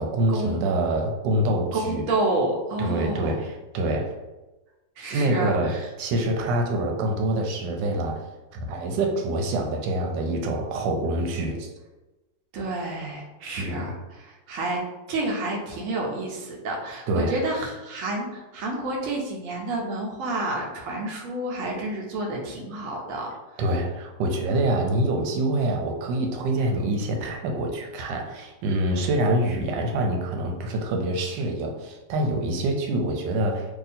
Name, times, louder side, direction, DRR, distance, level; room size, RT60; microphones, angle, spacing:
voice 1, 0.0-2.0 2.8-4.1 5.1-8.2 8.5-11.7 13.6-13.8 17.1-17.4 23.6-33.7, right 1 dB, 85° right, 2 dB, 1.3 m, -26 dB
voice 2, 1.7-3.4 5.0-5.9 12.5-14.8 15.1-23.3, right 2 dB, 60° right, -1 dB, 0.9 m, -29 dB
2.8 x 2.7 x 4.1 m, 1.1 s
omnidirectional pair, 1.9 m